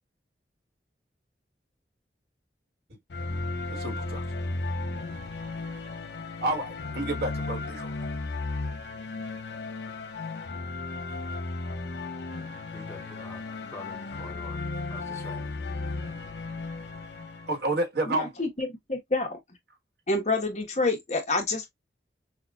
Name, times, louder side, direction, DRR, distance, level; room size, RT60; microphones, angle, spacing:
sound 1, 3.1-17.6, left 3 dB, 80° left, 0.9 m, -35 dB
voice 1, 3.7-4.2 6.4-8.1 13.0-13.1 17.5-18.3, right 2 dB, 65° right, 1.4 m, -30 dB
voice 2, 12.7-13.4 13.7-15.7, left 1 dB, 15° left, 0.8 m, -46 dB
voice 3, 18.1-19.4 20.1-21.7, left 3 dB, 40° left, 1.1 m, -28 dB
5.6 x 2.3 x 2.3 m
head